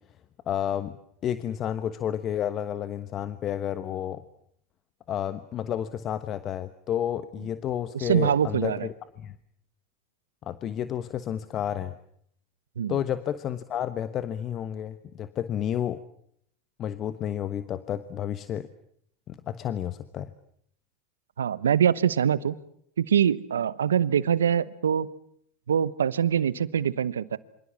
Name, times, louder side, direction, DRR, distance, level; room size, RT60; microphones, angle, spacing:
voice 1, 0.5-1.0 1.2-4.2 5.1-9.3 10.4-11.9 12.9-16.0 16.8-18.7 19.3-20.3, left 10 dB, 40° left, 12 dB, 1.2 m, -31 dB
voice 2, 7.9-8.9 12.8-13.0 21.4-22.5 23.0-25.1 25.7-27.4, right 8 dB, 90° right, 18 dB, 1.0 m, -24 dB
27.5 x 25.5 x 7.3 m, 0.68 s
hypercardioid pair, 90°, 0 cm